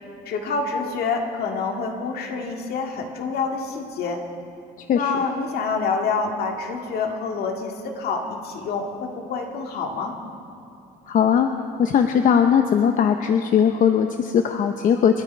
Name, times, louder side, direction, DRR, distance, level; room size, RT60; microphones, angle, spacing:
voice 1, 0.3-4.2 4.9-10.2, left 4 dB, 70° left, 2 dB, 2.0 m, -27 dB
voice 2, 11.1-11.5 11.8-15.2, left 8 dB, 50° left, 6 dB, 0.8 m, -19 dB
28.5 x 10.5 x 4.5 m, 2.7 s
cardioid pair, 110°, 17 cm